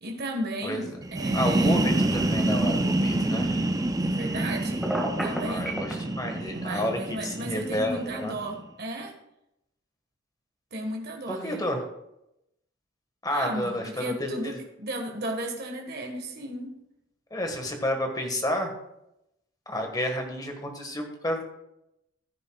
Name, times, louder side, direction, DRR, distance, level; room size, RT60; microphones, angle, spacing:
voice 1, 0.0-1.9 4.0-4.9 5.2-5.8 6.5-9.1 10.7-11.7 13.3-16.8, right 1 dB, 55° right, 2 dB, 1.6 m, -34 dB
sound 1, 1.0-8.6, right 1 dB, 15° right, 0.5 m, -27 dB
voice 2, 1.3-3.7 5.5-8.3 11.3-11.8 13.2-14.6 17.3-18.7 19.7-21.4, left 1 dB, 20° left, 3 dB, 1.6 m, -30 dB
Telephone, 4.8-5.9, right 1 dB, ahead, 1.9 m, -29 dB
15.0 x 9.5 x 2.4 m, 0.85 s
head